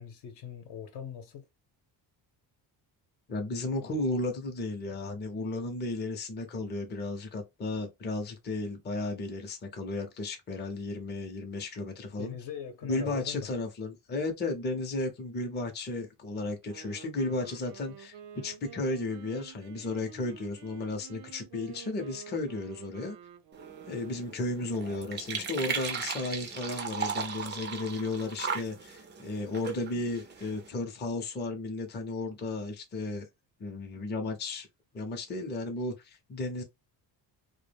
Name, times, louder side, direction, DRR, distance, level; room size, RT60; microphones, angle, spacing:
voice 1, 0.0-1.4 12.2-13.5, left 7 dB, 65° left, 0.8 m, -41 dB
voice 2, 3.3-12.3 12.8-23.2 23.9-33.3 33.6-34.7 34.9-36.6, left 2 dB, 25° left, 0.5 m, -34 dB
Wind instrument woodwind instrument, 16.5-24.5, right 9 dB, 75° right, 0.6 m, -50 dB
sound 1, 23.5-30.7, right 5 dB, 25° right, 0.4 m, -37 dB
2.2 x 2.1 x 3.2 m
cardioid pair, 135°, 43 cm